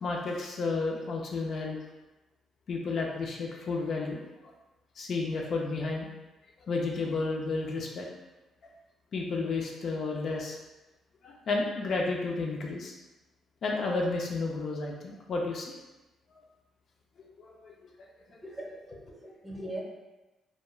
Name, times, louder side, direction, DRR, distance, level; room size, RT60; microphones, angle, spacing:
voice 1, 0.0-1.8 2.7-4.5 5.0-6.1 6.7-8.1 9.1-10.6 11.2-12.9 13.6-15.7 16.3-16.4 17.2-18.1, left 3 dB, 60° left, -1 dB, 0.4 m, -32 dB
voice 2, 18.4-19.8, right 1 dB, 5° right, -3 dB, 0.7 m, -40 dB
2.3 x 2.1 x 3.0 m, 1.1 s
cardioid pair, 90°, 0 cm